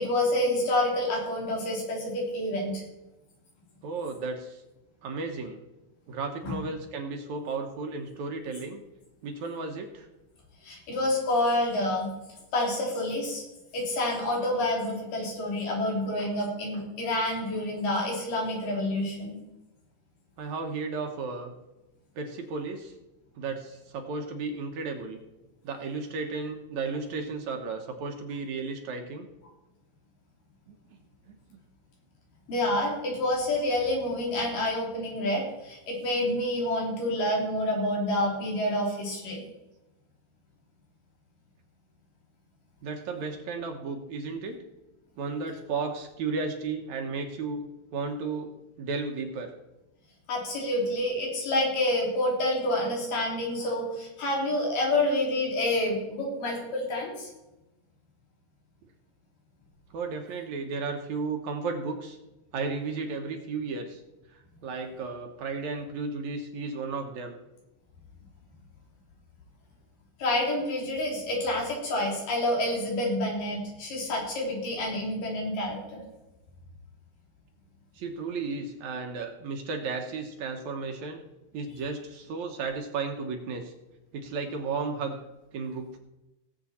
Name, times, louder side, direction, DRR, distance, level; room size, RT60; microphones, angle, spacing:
voice 1, 0.0-2.8 6.4-6.6 10.6-12.1 12.5-13.4 13.7-19.4 32.5-39.4 50.3-57.3 70.2-76.0, left 1 dB, 85° left, -2 dB, 4.9 m, -28 dB
voice 2, 3.8-4.6 5.0-5.6 6.1-8.8 9.2-10.1 20.4-21.5 22.2-22.9 23.4-25.2 25.6-29.3 30.7-30.8 31.3-31.6 42.8-44.6 45.2-47.6 47.9-49.5 59.9-62.2 62.5-64.0 64.3-67.4 77.9-81.2 81.5-83.7 84.1-85.2 85.5-86.0, right 4 dB, 65° right, 4 dB, 2.3 m, -34 dB
18.0 x 7.7 x 4.2 m, 0.99 s
omnidirectional pair, 3.7 m